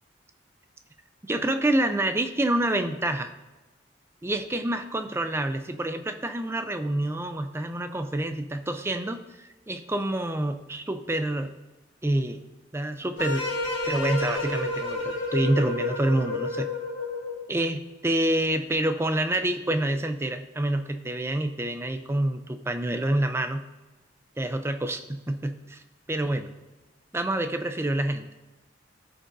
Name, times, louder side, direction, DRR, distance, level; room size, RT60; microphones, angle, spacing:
voice 1, 1.3-3.3 4.2-11.5 12.0-12.4 12.7-13.5 13.9-16.7 17.5-23.7 24.4-25.8 26.1-26.5 27.1-28.2, right 1 dB, 15° right, 8 dB, 0.4 m, -27 dB
sound 1, 13.2-17.5, left 2 dB, 75° left, 1.9 m, -30 dB
13.5 x 5.2 x 2.6 m, 1.1 s
head